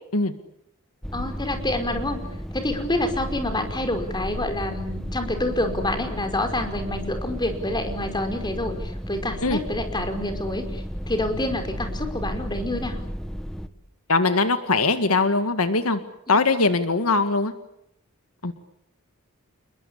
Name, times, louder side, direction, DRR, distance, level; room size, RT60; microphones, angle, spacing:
sound 1, 1.0-13.7, equal, ahead, 1.5 m, -33 dB
voice 1, 1.1-2.2 2.5-13.0 16.3-16.4, left 1 dB, 20° left, 6 dB, 5.0 m, -28 dB
voice 2, 14.1-16.0 16.3-17.5 18.4-18.5, left 3 dB, 85° left, 9 dB, 1.9 m, -21 dB
29.0 x 21.5 x 8.5 m, 0.76 s
head